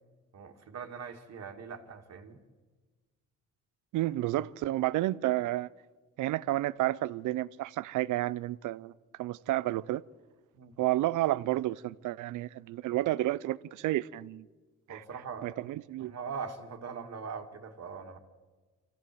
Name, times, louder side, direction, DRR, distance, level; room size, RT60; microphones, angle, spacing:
voice 1, 0.3-2.4 10.5-10.7 14.9-15.6 16.0-18.2, right 5 dB, 55° right, 2.2 m, -41 dB
voice 2, 3.9-5.7 6.2-8.9 9.2-10.0 10.8-14.5 14.9-15.0 15.4-16.1, right 16 dB, 80° right, 0.6 m, -31 dB
25.0 x 15.0 x 7.7 m
cardioid pair, 90°, 30 cm